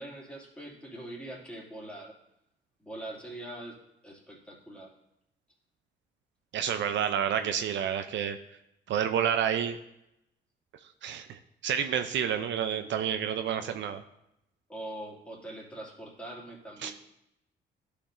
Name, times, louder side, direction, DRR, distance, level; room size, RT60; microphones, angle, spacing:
voice 1, 0.0-2.1 2.8-4.9 14.7-16.9, right 1 dB, 5° left, -4 dB, 2.3 m, -43 dB
voice 2, 6.5-8.4 8.9-9.8 11.0-14.0 16.8-16.9, right 8 dB, 65° right, 8 dB, 0.5 m, -29 dB
11.5 x 5.1 x 2.6 m, 0.82 s
cardioid pair, 90°, 20 cm